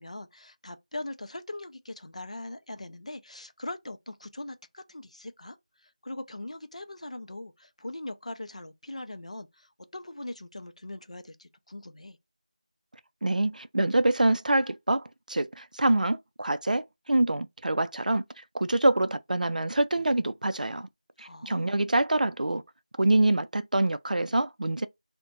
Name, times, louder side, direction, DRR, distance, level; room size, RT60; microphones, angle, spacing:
voice 1, 0.0-12.2 21.2-21.8, left 2 dB, 55° left, 0.4 m, -41 dB
voice 2, 13.2-18.2 18.5-20.9 21.2-22.6 23.0-24.9, right 2 dB, 85° right, 0.3 m, -25 dB
2.3 x 2.1 x 2.8 m
figure-of-eight pair, 175°, 4 cm